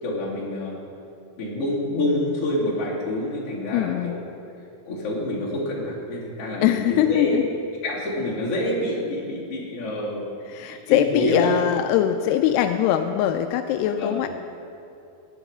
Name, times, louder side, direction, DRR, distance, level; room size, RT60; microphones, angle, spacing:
voice 1, 0.0-0.8 1.4-4.2 4.9-7.4 7.8-10.2 10.7-11.5 13.8-14.2, left 1 dB, 40° left, -7 dB, 3.7 m, -27 dB
voice 2, 3.7-4.2 6.6-7.4 10.5-14.3, left 11 dB, 85° left, 7 dB, 2.6 m, -22 dB
18.5 x 10.0 x 5.0 m, 2.6 s
omnidirectional pair, 4.7 m